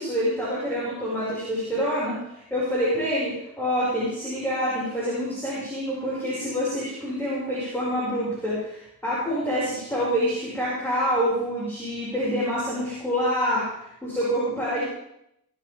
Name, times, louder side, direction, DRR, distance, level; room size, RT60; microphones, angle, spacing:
voice 1, 0.0-14.8, equal, 5° left, -10 dB, 5.9 m, -27 dB
25.5 x 8.5 x 3.7 m, 0.80 s
wide cardioid pair, 150°, 40 cm